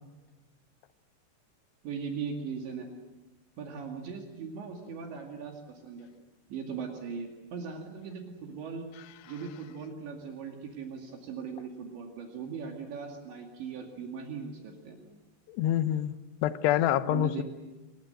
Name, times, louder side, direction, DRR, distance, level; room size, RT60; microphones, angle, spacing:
voice 1, 1.8-2.9 3.6-6.1 6.5-8.9 9.3-15.0 17.1-17.4, right 6 dB, 70° right, 1 dB, 4.5 m, -39 dB
voice 2, 15.5-16.2 16.4-17.4, left 12 dB, 75° left, 12 dB, 2.7 m, -26 dB
26.5 x 22.5 x 7.8 m, 1.2 s
omnidirectional pair, 5.5 m